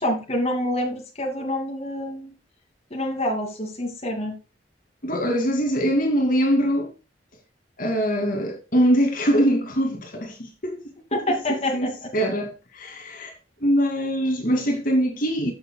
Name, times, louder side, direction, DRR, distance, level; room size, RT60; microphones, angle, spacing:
voice 1, 0.0-2.3 2.9-4.4 11.1-12.1, left 1 dB, 35° left, 2.5 m, -27 dB
voice 2, 5.0-6.9 7.8-10.8 11.5-13.3 13.6-15.5, equal, 50° left, 2.4 m, -23 dB
14.0 x 6.9 x 2.3 m
head